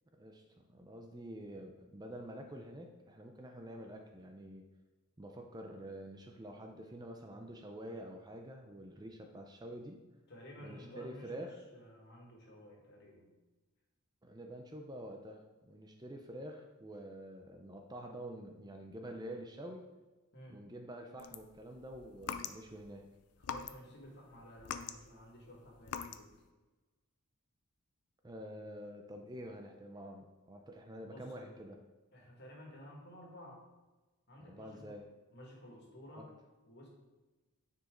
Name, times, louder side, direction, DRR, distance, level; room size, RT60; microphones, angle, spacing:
voice 1, 0.1-4.7 5.2-10.0 10.6-11.6 14.2-19.9 20.5-23.0 28.2-31.8 34.4-35.1 36.2-36.3, right 1 dB, 20° right, 3 dB, 0.5 m, -47 dB
voice 2, 10.3-13.3 20.3-20.6 23.4-26.3 31.0-31.6 32.1-33.6 34.3-35.0 35.3-36.3 36.6-36.9, equal, 50° left, -1 dB, 2.0 m, -53 dB
sound 1, 21.2-22.9 23.4-24.1 24.4-26.3, left 7 dB, 75° left, 0.5 m, -43 dB
9.7 x 5.0 x 3.8 m, 1.2 s
head